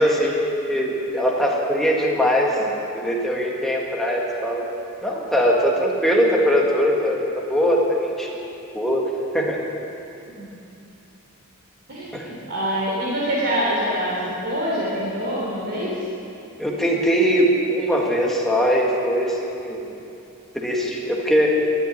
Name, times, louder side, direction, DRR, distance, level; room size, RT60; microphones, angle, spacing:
voice 1, 0.0-2.6 2.9-4.6 5.0-8.5 8.7-9.0 9.3-9.6 12.1-12.3 16.6-19.9 20.5-21.5, equal, ahead, -3 dB, 1.8 m, -21 dB
voice 2, 11.9-14.1 14.4-15.9, equal, 50° right, -6 dB, 3.2 m, -25 dB
13.0 x 11.5 x 9.5 m, 2.8 s
head